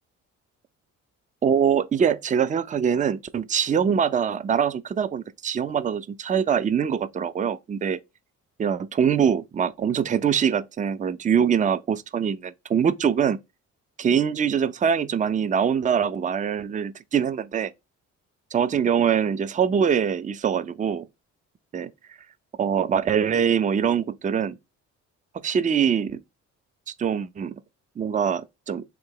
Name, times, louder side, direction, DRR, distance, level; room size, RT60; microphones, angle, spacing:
voice 1, 1.4-8.0 8.6-13.4 14.0-17.7 18.5-21.1 21.7-21.9 22.6-24.6 25.4-26.2 27.0-27.6 28.0-28.8, right 7 dB, 25° right, 0.4 m, -23 dB
3.9 x 2.7 x 4.6 m
cardioid pair, 90°, 30 cm